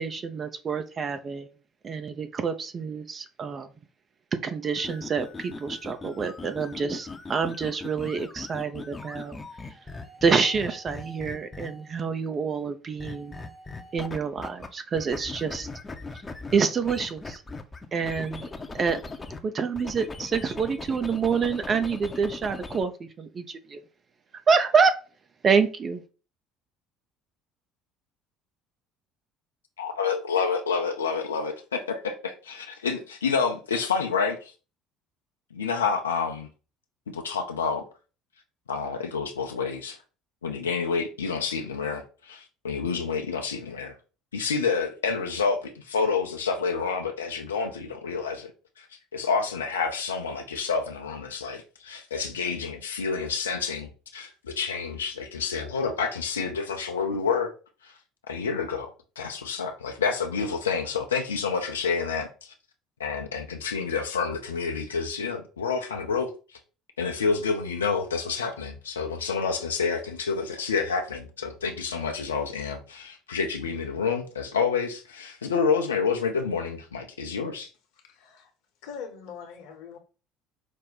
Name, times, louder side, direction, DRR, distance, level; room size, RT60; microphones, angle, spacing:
voice 1, 0.0-1.5 1.8-3.7 4.4-9.4 10.2-13.3 13.9-15.7 16.5-17.4 17.9-18.5 18.7-19.0 19.4-23.8 24.5-25.0 25.4-26.0, right 5 dB, 35° right, 0.6 m, -27 dB
sound 1, 4.8-12.0 13.0-14.7 15.0-19.4 19.7-22.8, left 3 dB, 25° left, 0.7 m, -40 dB
voice 2, 29.8-34.5 35.5-36.5 37.1-37.9 38.7-40.0 40.4-43.9 44.3-48.5 48.8-48.9 49.1-57.5 57.8-57.9 58.3-62.5 63.0-66.3 67.0-77.7, left 5 dB, 85° left, 0.6 m, -28 dB
voice 3, 78.0-78.5 78.8-80.0, left 6 dB, 70° left, 1.0 m, -42 dB
5.2 x 2.2 x 4.0 m
figure-of-eight pair, 60°, 0 cm